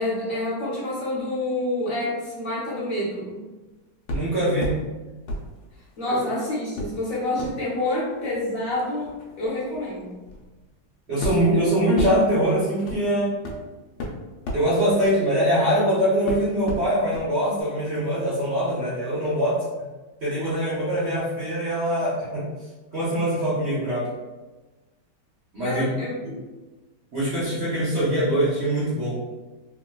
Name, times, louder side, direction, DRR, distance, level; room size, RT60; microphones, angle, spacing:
voice 1, 0.0-3.4 6.0-9.1 9.4-10.1 25.6-26.1, left 1 dB, 55° left, -9 dB, 1.2 m, -27 dB
sound 1, 4.1-4.8 5.3-6.2 6.7-15.8 16.3-17.3 17.6-17.7, left 1 dB, 80° left, 1.3 m, -34 dB
voice 2, 4.1-4.7 6.1-6.2 11.1-13.3 14.5-19.6 20.2-22.5 22.9-24.1 25.5-25.9 26.2-26.3 27.1-29.2, equal, 50° right, -10 dB, 0.8 m, -23 dB
3.6 x 2.2 x 2.2 m, 1.2 s
omnidirectional pair, 2.0 m